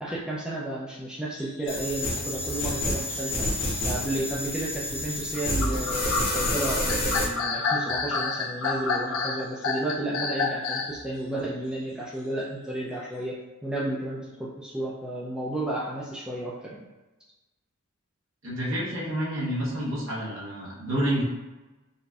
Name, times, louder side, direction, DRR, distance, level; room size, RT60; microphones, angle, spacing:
voice 1, 0.0-3.5 3.8-13.4 13.6-16.8, right 1 dB, 5° right, -6 dB, 0.4 m, -32 dB
sound 1, 1.3-11.0, left 4 dB, 75° left, 0.5 m, -31 dB
sound 2, 1.7-7.2, left 1 dB, 50° left, 1.0 m, -29 dB
voice 2, 18.4-21.2, equal, 65° right, -6 dB, 0.9 m, -29 dB
3.9 x 2.6 x 2.3 m, 1.1 s
head